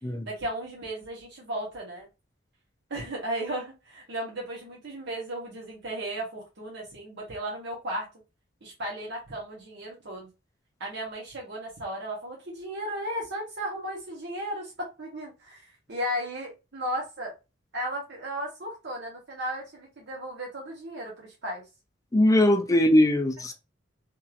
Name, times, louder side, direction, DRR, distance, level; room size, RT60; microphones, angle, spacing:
voice 1, 0.2-2.1 2.9-8.1 8.6-10.3 10.8-17.3 17.7-21.6, right 1 dB, 60° right, 1.1 m, -35 dB
voice 2, 22.1-23.5, left 1 dB, 15° left, 0.4 m, -20 dB
3.0 x 2.7 x 2.4 m
head